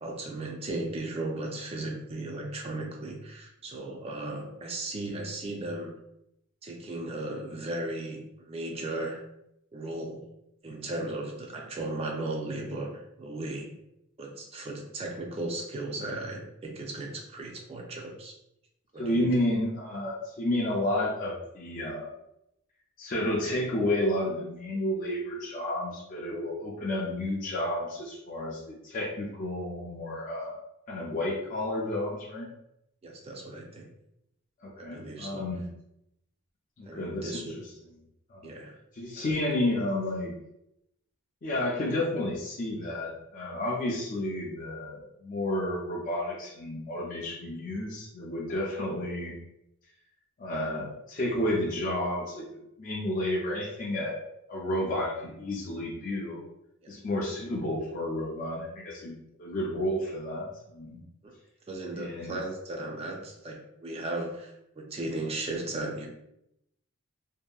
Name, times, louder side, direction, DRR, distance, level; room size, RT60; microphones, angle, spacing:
voice 1, 0.0-5.9 6.6-9.2 9.7-10.2 10.6-13.7 14.2-18.4 18.9-19.3 33.0-33.9 34.8-35.4 36.9-37.6 38.4-38.7 39.2-39.4 56.8-56.9 61.2-61.3 61.7-66.1, right 2 dB, 30° right, 0 dB, 0.4 m, -36 dB
voice 2, 19.0-22.1 23.0-30.6 30.9-32.5 34.6-35.6 36.8-37.4 38.3-38.5 38.9-40.3 41.4-49.4 50.4-52.4 52.8-54.2 54.5-56.4 56.9-61.0 61.9-62.4, left 1 dB, 40° left, -4 dB, 0.4 m, -31 dB
2.7 x 2.5 x 2.3 m, 0.82 s
head